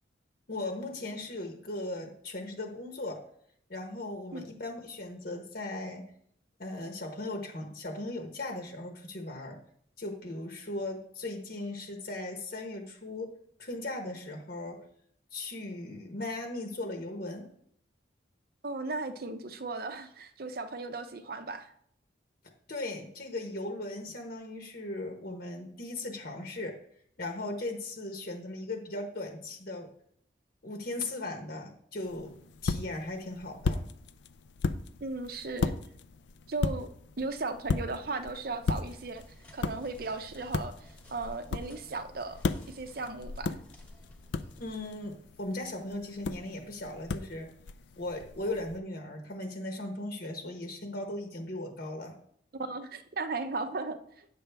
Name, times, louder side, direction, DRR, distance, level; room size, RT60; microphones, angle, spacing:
voice 1, 0.5-3.2 3.7-6.1 6.6-9.6 10.0-13.3 13.6-14.8 15.3-17.5 22.7-26.8 27.2-29.9 30.6-33.9 44.6-47.5 48.0-52.2, left 2 dB, 50° left, 3 dB, 1.0 m, -38 dB
voice 2, 18.6-21.7 35.0-35.8 36.5-36.9 37.2-39.2 39.5-42.4 42.7-43.6 52.5-54.3, right 3 dB, 50° right, 9 dB, 0.6 m, -36 dB
sound 1, 32.0-48.8, left 4 dB, 65° left, 0.4 m, -37 dB
sound 2, 39.1-44.9, equal, 5° left, 1.1 m, -55 dB
8.7 x 6.8 x 3.4 m, 0.66 s
head